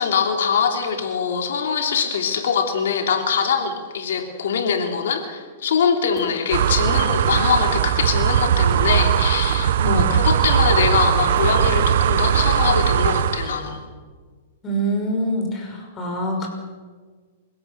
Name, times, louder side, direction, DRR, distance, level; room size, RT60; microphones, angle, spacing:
voice 1, 0.0-13.8, left 6 dB, 75° left, 4 dB, 2.9 m, -23 dB
Hammer, 6.2-7.3 7.7-8.0 8.4-10.0 10.5-10.9 11.2-12.9, right 4 dB, 40° right, 4.7 m, -41 dB
sound 1, 6.5-13.6, right 9 dB, 70° right, 1.1 m, -19 dB
voice 2, 14.6-16.5, right 1 dB, 25° left, 2 dB, 5.8 m, -25 dB
28.0 x 16.5 x 6.8 m, 1.5 s
hypercardioid pair, 140°, 0 cm